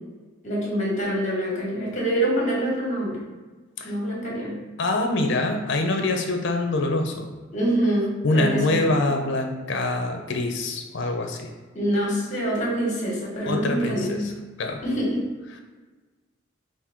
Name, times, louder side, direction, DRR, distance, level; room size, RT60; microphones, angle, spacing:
voice 1, 0.4-3.2 3.8-4.6 7.5-8.8 9.0-9.1 11.7-14.2 14.8-15.2, right 1 dB, 40° left, -4 dB, 1.5 m, -25 dB
voice 2, 4.8-7.3 8.2-11.5 13.4-14.2 14.6-14.8, left 2 dB, 60° left, 4 dB, 0.6 m, -24 dB
5.3 x 2.6 x 3.6 m, 1.3 s
head